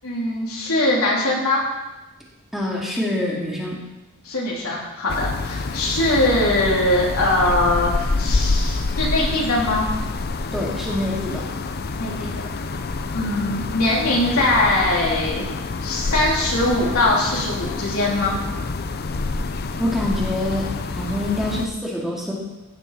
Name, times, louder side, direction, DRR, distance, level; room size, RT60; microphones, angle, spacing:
voice 1, 0.0-1.6 4.2-9.9 12.0-12.4 13.1-15.4 15.8-18.4, left 1 dB, 80° left, -4 dB, 3.5 m, -21 dB
voice 2, 2.5-3.8 10.5-11.5 19.8-22.3, left 1 dB, ahead, -4 dB, 2.1 m, -25 dB
sound 1, 5.1-21.7, left 3 dB, 45° left, 0.6 m, -27 dB
15.5 x 8.2 x 4.2 m, 1.0 s
head